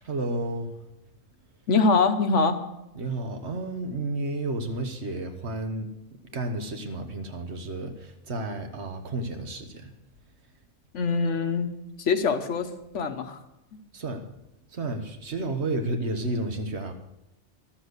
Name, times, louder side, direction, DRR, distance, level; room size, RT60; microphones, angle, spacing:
voice 1, 0.0-0.9 2.9-9.9 13.9-14.3 14.7-16.9, right 2 dB, 65° right, 6 dB, 1.5 m, -32 dB
voice 2, 1.7-2.6 10.9-11.7 12.0-13.4 13.7-13.8, left 4 dB, 80° left, 8 dB, 1.3 m, -24 dB
12.5 x 7.3 x 8.2 m, 0.89 s
omnidirectional pair, 1.2 m